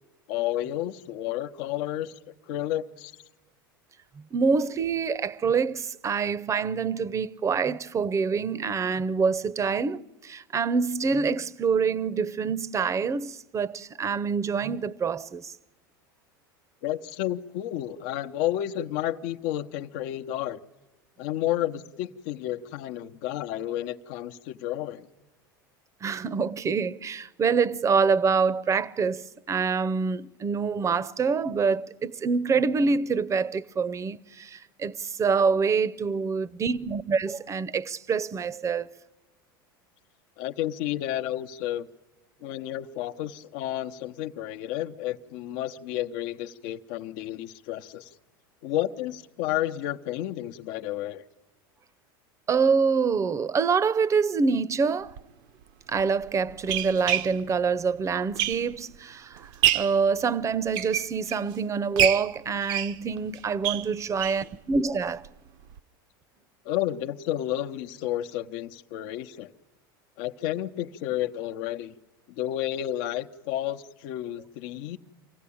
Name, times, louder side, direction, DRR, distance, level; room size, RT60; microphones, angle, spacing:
voice 1, 0.3-2.2 2.5-3.1 16.8-20.6 21.2-25.1 40.4-41.9 42.4-48.1 48.6-51.2 66.6-69.5 70.2-71.9 72.3-75.0, left 13 dB, 65° left, 0.9 m, -31 dB
voice 2, 4.3-15.5 26.0-38.9 52.5-55.2 55.9-65.2, right 5 dB, 25° right, 0.7 m, -26 dB
sound 1, 55.1-55.2 56.0-59.0 59.4-60.0 60.5-61.5 62.0-64.5 64.9-65.0 65.2-65.3 65.7-65.8, right 11 dB, 65° right, 0.8 m, -28 dB
24.5 x 15.5 x 8.6 m
hypercardioid pair, 95°, 12 cm